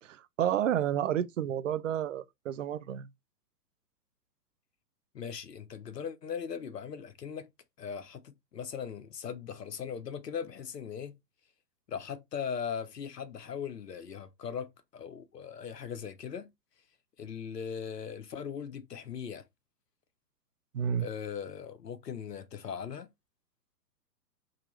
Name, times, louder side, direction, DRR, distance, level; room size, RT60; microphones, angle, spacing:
voice 1, 0.1-3.1 20.7-21.1, right 10 dB, 50° right, 0.6 m, -30 dB
voice 2, 5.1-7.5 7.8-11.2 11.9-16.5 17.2-19.4 21.0-23.1, left 7 dB, 75° left, 1.0 m, -39 dB
3.8 x 2.8 x 4.5 m
figure-of-eight pair, 120°, 50 cm